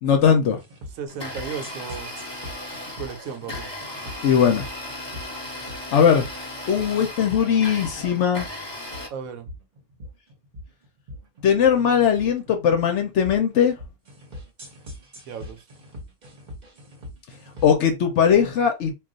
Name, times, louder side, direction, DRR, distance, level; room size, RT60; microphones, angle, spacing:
voice 1, 0.0-0.6 4.2-4.6 5.9-6.2 6.7-8.5 11.4-13.7 17.6-18.9, left 7 dB, 65° left, 0.8 m, -19 dB
sound 1, 0.6-17.9, left 1 dB, 40° right, 0.8 m, -42 dB
voice 2, 1.0-2.2 3.0-3.7 9.1-9.5 15.3-15.6, right 7 dB, 75° right, 1.0 m, -35 dB
Domestic sounds home sounds, 1.1-9.1, left 1 dB, 20° left, 0.9 m, -36 dB
2.4 x 2.3 x 3.8 m
omnidirectional pair, 1.5 m